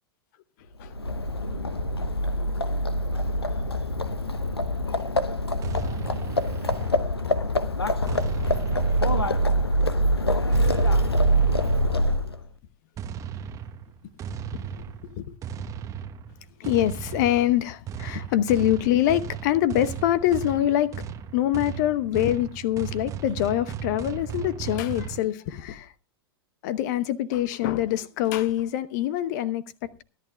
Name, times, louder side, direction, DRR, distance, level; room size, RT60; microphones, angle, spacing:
Livestock farm animals working animals, 0.8-12.4, equal, 85° left, 0.9 m, -24 dB
voice 1, 4.8-5.3 5.8-6.1 8.1-8.2 8.8-8.9 14.6-15.3 16.6-21.0 21.3-25.9 26.6-30.0, left 12 dB, 45° left, 0.9 m, -25 dB
sound 1, 5.6-7.4 8.1-9.8 10.5-12.2 13.0-25.2, right 8 dB, 25° right, 1.0 m, -36 dB
24.5 x 11.0 x 2.3 m
figure-of-eight pair, 95°, 13 cm